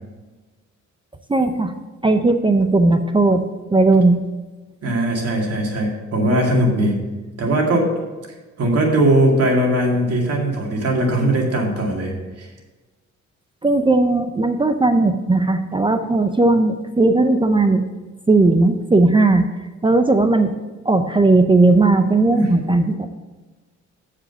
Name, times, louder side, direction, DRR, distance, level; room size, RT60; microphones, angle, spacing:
voice 1, 1.3-1.7 2.0-3.4 3.7-4.2 13.6-17.8 18.3-19.4 19.8-20.5 20.9-23.1, right 2 dB, 15° right, 7 dB, 0.5 m, -16 dB
voice 2, 4.8-7.0 7.4-7.9 8.6-12.5 22.3-22.5, right 1 dB, 55° right, 0 dB, 2.2 m, -19 dB
7.5 x 5.0 x 6.8 m, 1.2 s
cardioid pair, 90°, 30 cm